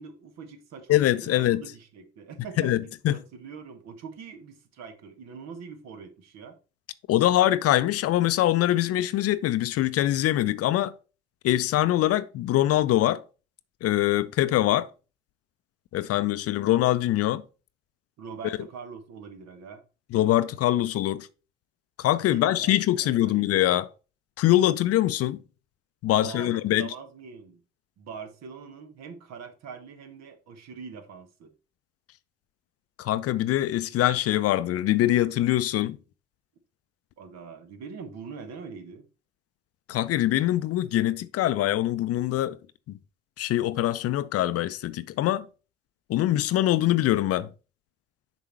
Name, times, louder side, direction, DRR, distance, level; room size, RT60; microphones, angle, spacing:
voice 1, 0.0-6.6 18.2-19.8 22.2-23.7 26.1-27.6 28.0-31.5 37.2-39.1, right 5 dB, 60° right, 1.3 m, -43 dB
voice 2, 0.9-1.6 2.6-3.2 7.1-10.9 11.4-13.2 13.8-14.9 15.9-17.4 20.1-21.3 22.0-23.9 24.4-25.4 26.0-26.9 33.0-36.0 39.9-42.6 42.9-43.0 43.4-45.5 46.1-47.5, left 14 dB, 50° left, 0.5 m, -23 dB
6.7 x 4.6 x 4.4 m
figure-of-eight pair, 45°, 30 cm